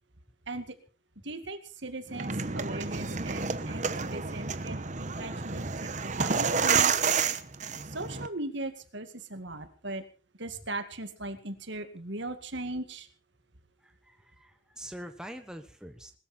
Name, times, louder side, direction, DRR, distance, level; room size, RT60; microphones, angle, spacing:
voice 1, 0.5-0.8 1.2-7.3 7.8-10.0 10.4-13.1, right 2 dB, 60° right, 9 dB, 2.2 m, -39 dB
sound 1, 2.1-8.3, right 5 dB, 35° right, 1.0 m, -29 dB
voice 2, 13.8-16.1, equal, 5° right, 6 dB, 1.2 m, -44 dB
20.5 x 13.5 x 4.4 m, 0.35 s
head